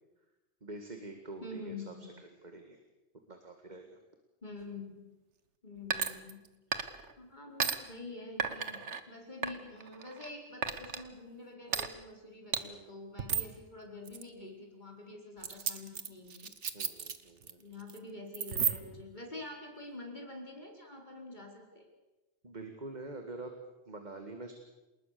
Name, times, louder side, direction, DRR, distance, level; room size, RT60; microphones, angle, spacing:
voice 1, 0.6-1.9 2.4-2.8 3.3-4.0 12.6-12.9 16.7-17.6 22.4-23.5 23.9-24.5, right 2 dB, 40° right, 5 dB, 2.1 m, -45 dB
voice 2, 1.4-2.1 4.4-5.0 5.6-6.4 7.2-16.5 17.6-21.8, left 2 dB, 40° left, 1 dB, 5.0 m, -47 dB
sound 1, 5.9-6.5 6.7-7.1 7.6-7.8 8.4-9.0 9.4-10.3 10.6-11.0 11.7-11.9 12.5-12.6 13.2-13.5 14.0-14.2 15.4-17.5 17.8-18.0 18.3-19.0, right 6 dB, 80° right, 1.6 m, -34 dB
28.5 x 19.5 x 6.9 m, 1.1 s
omnidirectional pair, 1.2 m